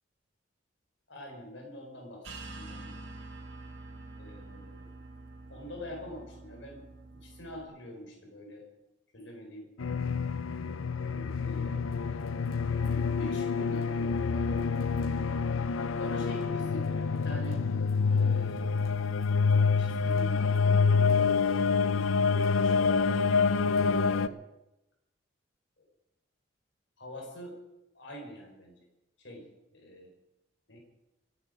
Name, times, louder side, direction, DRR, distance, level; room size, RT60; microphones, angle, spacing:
voice 1, 1.1-2.9 4.2-4.9 5.5-6.8 7.1-8.6 9.1-9.7 11.0-11.8 12.7-14.6 15.9-17.6 18.0-18.7 19.8-24.4 27.0-27.6 27.9-28.9 29.2-30.1 30.7-30.8, equal, 65° left, 1 dB, 4.4 m, -45 dB
sound 1, 2.2-7.6, right 2 dB, 75° right, 2.9 m, -46 dB
sound 2, 9.8-24.3, left 5 dB, 90° left, 0.6 m, -27 dB
26.0 x 9.6 x 5.0 m, 0.96 s
head